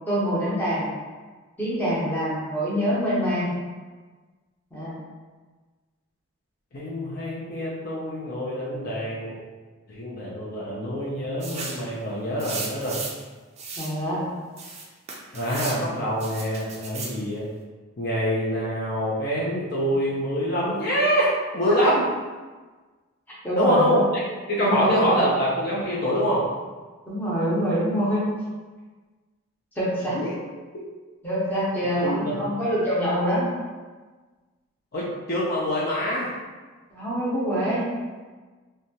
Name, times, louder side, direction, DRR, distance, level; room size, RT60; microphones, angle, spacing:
voice 1, 0.1-0.9 1.6-3.5 4.7-4.9 13.8-14.3 23.4-24.1 24.6-25.2 27.1-28.2 29.8-30.2 31.2-33.5 36.9-37.8, equal, 10° left, -8 dB, 0.7 m, -25 dB
voice 2, 6.7-9.4 9.9-13.0 15.3-17.5 18.0-22.1 23.5-24.0 24.5-26.4 30.1-30.4 32.0-32.4 34.9-36.3, equal, 45° left, -6 dB, 0.4 m, -25 dB
sound 1, 11.4-11.9 12.4-13.2 13.6-13.9 14.6-15.8 16.2-17.2, right 3 dB, 30° right, 0.3 m, -35 dB
2.8 x 2.2 x 2.8 m, 1.3 s
head